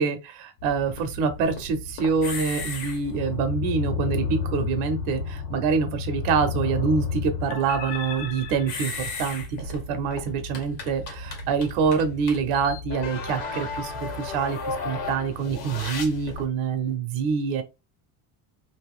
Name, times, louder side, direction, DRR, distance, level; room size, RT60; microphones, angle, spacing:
voice 1, 0.0-17.6, right 5 dB, 70° right, 0.9 m, -26 dB
sound 1, 0.6-16.5, left 4 dB, 50° left, 1.2 m, -33 dB
2.9 x 2.7 x 3.5 m
cardioid pair, 170°, 50 cm